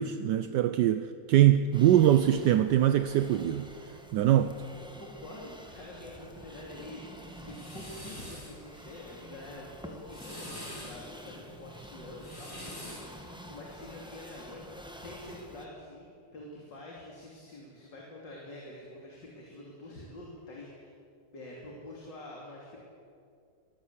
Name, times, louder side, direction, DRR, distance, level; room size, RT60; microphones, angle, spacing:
voice 1, 0.0-3.7 4.1-4.5, right 11 dB, 75° right, 1.2 m, -23 dB
sound 1, 1.7-15.7, equal, 5° right, 1.5 m, -48 dB
voice 2, 5.0-10.5 10.8-14.6 15.0-20.9 21.3-22.8, left 1 dB, 75° left, 3.6 m, -46 dB
sound 2, 7.2-8.5 9.9-11.0 12.0-13.1, equal, 25° left, 6.3 m, -45 dB
22.5 x 14.5 x 8.2 m
omnidirectional pair, 2.0 m